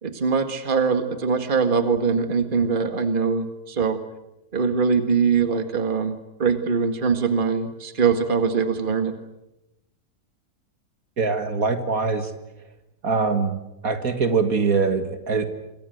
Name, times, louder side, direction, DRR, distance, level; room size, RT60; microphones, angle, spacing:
voice 1, 0.0-4.0 4.5-9.2, right 5 dB, 35° right, 8 dB, 1.9 m, -22 dB
voice 2, 11.2-12.3 13.0-13.6 13.8-15.5, right 4 dB, 65° right, 8 dB, 2.3 m, -23 dB
27.0 x 24.0 x 8.0 m, 0.94 s
omnidirectional pair, 1.6 m